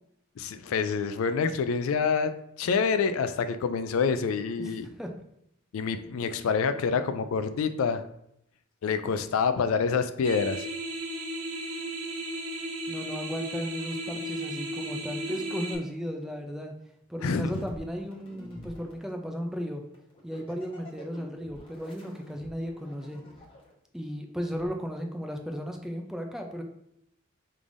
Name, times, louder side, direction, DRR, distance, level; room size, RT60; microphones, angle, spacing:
voice 1, 0.4-4.9 5.7-8.0 8.8-10.7 17.2-17.7, left 5 dB, 65° left, 10 dB, 0.3 m, -27 dB
sound 1, 10.2-15.7, right 1 dB, 85° right, 0.8 m, -35 dB
voice 2, 12.9-16.7 17.1-19.8 20.2-23.2 23.9-26.6, equal, ahead, 3 dB, 0.4 m, -35 dB
sound 2, 17.4-19.0 19.9-23.7 24.5-24.7, left 1 dB, 25° left, 1.0 m, -48 dB
5.2 x 3.3 x 2.5 m, 0.77 s
head